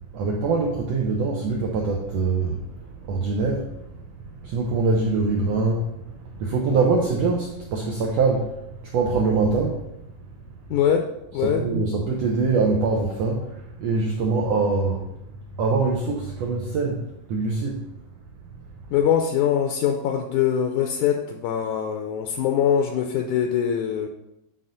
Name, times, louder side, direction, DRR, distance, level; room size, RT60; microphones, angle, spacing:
voice 1, 0.1-3.9 4.4-8.5 8.9-9.8 11.3-15.1 15.5-17.0 17.3-17.8, right 3 dB, 90° right, -1 dB, 1.4 m, -24 dB
voice 2, 10.7-11.7 18.9-24.1, left 8 dB, 80° left, 4 dB, 1.8 m, -23 dB
8.8 x 4.2 x 3.9 m, 0.86 s
omnidirectional pair, 3.9 m